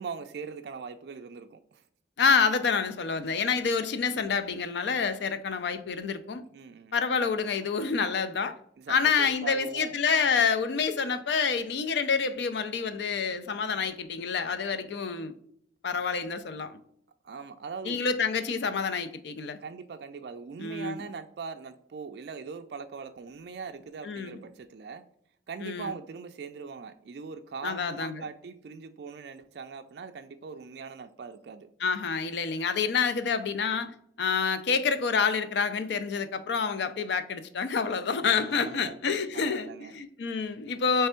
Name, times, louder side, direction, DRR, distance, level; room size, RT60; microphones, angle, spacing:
voice 1, 0.0-1.8 3.3-3.4 6.5-7.0 8.9-9.9 17.2-18.0 19.6-25.0 25.5-31.7 38.2-39.0 39.3-40.0, right 5 dB, 60° right, 0.3 m, -41 dB
voice 2, 2.2-6.4 6.9-8.6 8.9-15.3 15.8-16.8 17.8-19.6 20.6-21.0 24.0-24.4 25.6-25.9 27.6-28.2 31.8-33.9 34.2-41.1, left 5 dB, 65° left, 0.4 m, -28 dB
3.4 x 3.3 x 4.3 m
head